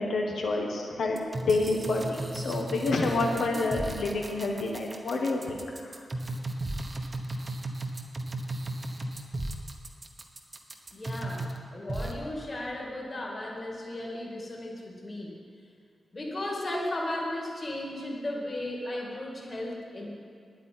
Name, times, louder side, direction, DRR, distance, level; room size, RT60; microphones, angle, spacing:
voice 1, 0.0-5.6, left 3 dB, 80° left, 0 dB, 1.3 m, -28 dB
sound 1, 1.2-11.6 11.9-12.1, right 2 dB, 25° right, 1.0 m, -35 dB
voice 2, 10.9-15.3 16.1-20.1, left 1 dB, 30° left, -2 dB, 2.0 m, -35 dB
9.8 x 8.4 x 9.5 m, 2.3 s
wide cardioid pair, 180°, 0 cm